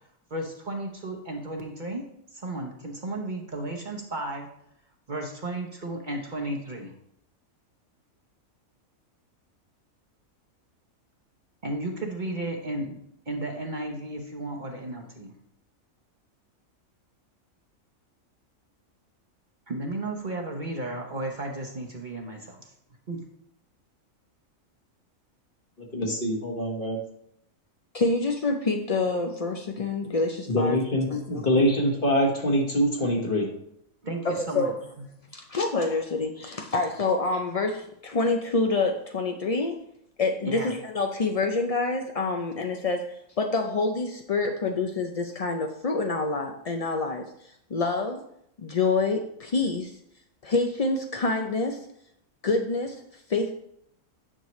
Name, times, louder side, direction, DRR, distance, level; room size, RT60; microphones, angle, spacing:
voice 1, 0.3-2.1 2.3-4.5 5.1-6.9 11.6-13.0 13.3-15.3 19.7-22.7 23.1-23.2 34.0-34.7 40.4-40.7, right 1 dB, 40° right, 1 dB, 1.0 m, -33 dB
voice 2, 25.8-27.0 30.5-33.5, equal, 40° left, 1 dB, 1.5 m, -24 dB
voice 3, 27.9-30.8 31.1-31.4 34.2-34.7 35.3-39.8 40.2-43.0 43.4-47.2 47.7-48.2 48.6-49.9 50.4-51.8 52.4-53.0 53.3-53.5, left 3 dB, 55° left, 3 dB, 0.4 m, -27 dB
9.9 x 6.5 x 3.1 m, 0.73 s
omnidirectional pair, 1.4 m